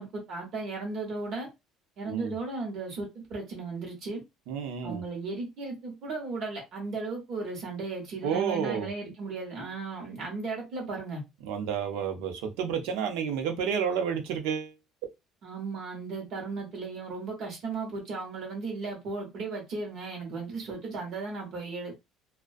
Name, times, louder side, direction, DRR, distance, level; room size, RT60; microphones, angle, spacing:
voice 1, 0.0-1.5 2.0-4.2 4.8-11.2 15.4-21.9, right 3 dB, 45° right, 0.8 m, -36 dB
voice 2, 4.5-5.0 8.2-8.9 11.4-14.7, right 7 dB, 85° right, 0.6 m, -30 dB
2.4 x 2.1 x 2.5 m
cardioid pair, 180°, 0 cm